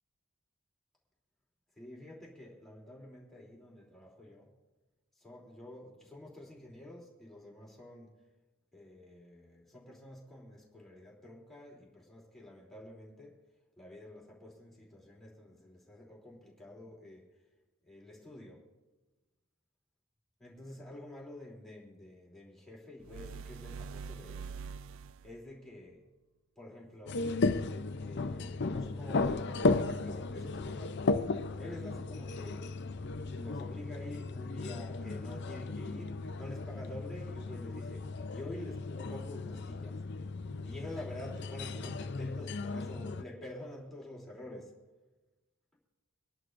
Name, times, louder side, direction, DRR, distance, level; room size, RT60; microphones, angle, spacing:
voice 1, 1.8-4.5 5.2-8.1 8.7-13.4 13.8-17.3 17.9-18.6 20.4-24.5 25.2-26.0 26.6-27.3 28.0-31.2 31.6-32.7 33.4-40.0 40.6-44.7, left 1 dB, ahead, -4 dB, 3.0 m, -48 dB
sound 1, 23.0-25.4, right 5 dB, 65° right, 0.3 m, -44 dB
sound 2, 27.1-43.2, left 3 dB, 50° left, 0.5 m, -35 dB
25.5 x 11.0 x 2.6 m, 1.2 s
head